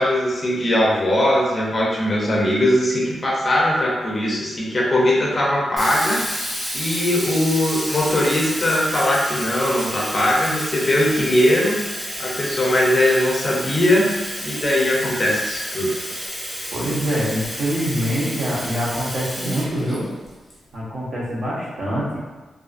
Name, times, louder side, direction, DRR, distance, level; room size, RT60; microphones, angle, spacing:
voice 1, 0.0-6.4 6.7-11.9 12.2-14.1 14.4-16.0, left 1 dB, 30° left, -4 dB, 0.5 m, -20 dB
Sink (filling or washing), 5.8-20.5, equal, 5° right, 0.9 m, -30 dB
voice 2, 16.7-20.1 20.7-22.2, equal, 55° right, -7 dB, 0.8 m, -24 dB
2.4 x 2.4 x 2.4 m, 1.2 s
wide cardioid pair, 160°, 0 cm